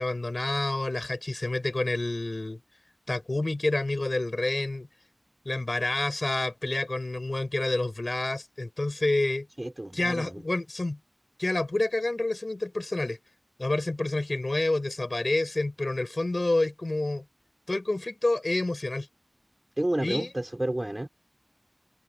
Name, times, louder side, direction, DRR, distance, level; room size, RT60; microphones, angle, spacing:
voice 1, 0.0-2.6 3.1-4.9 5.4-9.5 9.9-11.0 11.4-13.2 13.6-17.2 17.7-19.1 20.0-20.3, left 2 dB, 75° left, 6.6 m, -28 dB
voice 2, 9.6-10.4 19.8-21.1, right 1 dB, 35° right, 5.0 m, -30 dB
open air
wide cardioid pair, 40°, 0 cm